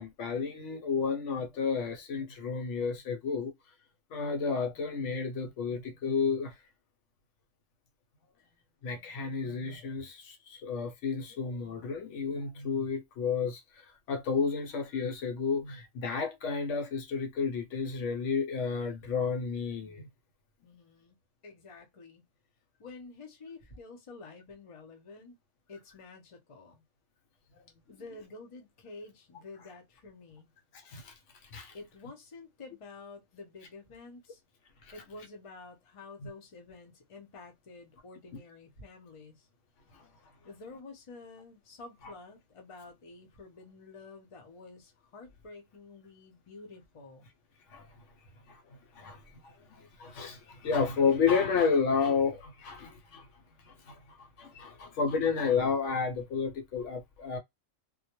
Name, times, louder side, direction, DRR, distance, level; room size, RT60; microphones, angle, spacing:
voice 1, 0.0-3.5 4.1-6.5 8.8-13.8 14.1-20.1 30.8-31.1 31.5-31.8 34.8-34.9 39.9-40.0 47.7-47.9 48.5-48.6 48.9-53.3 53.6-57.4, left 5 dB, 75° left, 0.9 m, -31 dB
voice 2, 20.6-21.2 21.4-22.2 22.8-25.4 25.7-26.8 27.9-30.5 31.7-34.4 34.9-39.5 40.4-47.3, left 3 dB, 35° left, 0.6 m, -49 dB
2.2 x 2.1 x 2.9 m
omnidirectional pair, 1.3 m